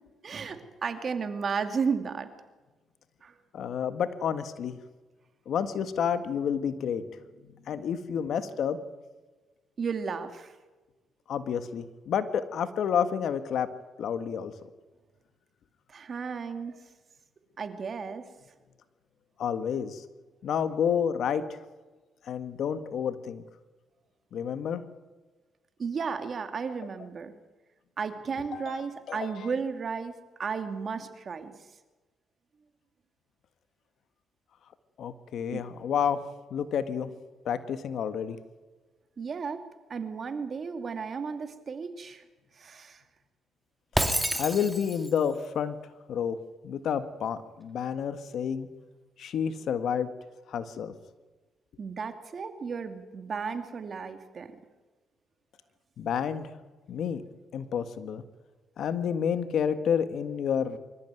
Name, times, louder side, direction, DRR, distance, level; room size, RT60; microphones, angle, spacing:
voice 1, 0.2-2.3 3.2-3.3 9.8-10.5 15.9-16.8 17.6-18.3 25.8-27.3 28.0-31.5 35.5-35.7 39.2-39.6 39.9-42.2 42.6-43.0 51.8-54.5, right 5 dB, 45° right, 8 dB, 2.6 m, -34 dB
voice 2, 3.5-4.8 5.5-7.1 7.4-8.8 11.3-13.7 14.0-14.5 19.4-20.0 20.4-21.4 22.3-23.4 24.3-24.8 28.5-29.5 35.0-36.2 36.5-37.1 37.5-38.4 44.4-45.8 46.1-46.4 46.6-48.7 49.2-50.1 50.5-51.0 56.0-56.5 56.9-57.2 57.5-58.2 58.8-60.8, left 8 dB, 70° left, 11 dB, 1.7 m, -29 dB
Shatter, 44.0-45.2, right 1 dB, 5° right, 2.3 m, -28 dB
25.0 x 14.5 x 9.3 m, 1.2 s
cardioid pair, 90°, 0 cm